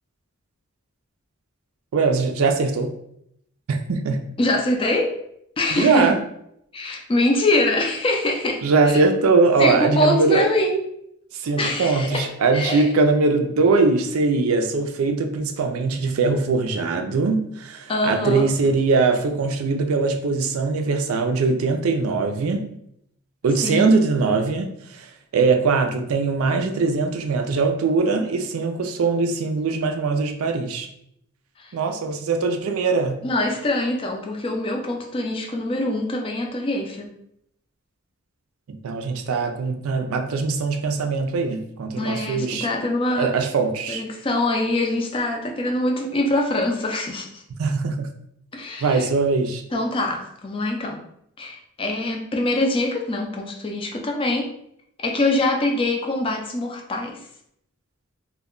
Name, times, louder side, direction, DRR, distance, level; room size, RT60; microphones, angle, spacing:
voice 1, 1.9-2.9 3.7-4.3 5.7-6.2 8.6-10.4 11.3-22.7 23.4-25.1 25.3-30.9 31.7-33.2 38.7-42.7 43.2-44.0 47.6-48.1 48.8-49.6, right 4 dB, 85° right, 6 dB, 0.4 m, -21 dB
voice 2, 4.4-5.1 5.6-6.2 6.7-9.0 9.6-10.8 11.6-12.9 17.9-18.5 23.6-23.9 31.6-31.7 33.2-37.1 42.0-43.3 43.9-47.4 48.5-49.1 49.7-51.0 51.4-54.5 55.0-57.2, left 1 dB, 25° left, 2 dB, 0.4 m, -24 dB
2.2 x 2.2 x 3.6 m, 0.73 s
head